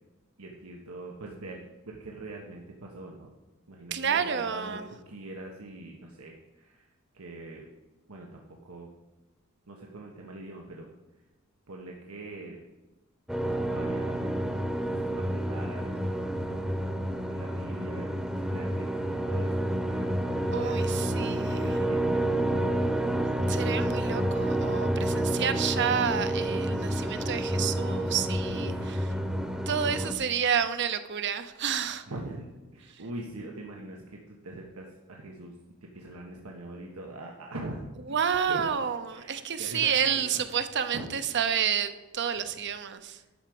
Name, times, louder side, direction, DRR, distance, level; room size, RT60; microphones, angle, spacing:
voice 1, 0.4-3.3 3.7-4.8 5.1-6.9 7.1-7.6 8.1-8.9 9.7-10.9 11.7-12.6 13.7-16.6 17.3-19.6 19.8-20.1 20.3-22.8 28.5-29.1 32.1-32.5 32.7-35.5 35.8-37.8 38.1-38.2 38.5-38.7 39.1-40.5 40.9-41.1 43.2-43.3, right 2 dB, 90° right, 0 dB, 1.3 m, -43 dB
voice 2, 3.9-4.9 20.5-21.8 23.5-28.7 29.7-32.1 38.1-43.2, right 7 dB, 55° right, 10 dB, 0.8 m, -29 dB
sound 1, 13.3-30.1, right 1 dB, 5° right, 0.9 m, -29 dB
11.5 x 4.9 x 7.8 m, 1.1 s
head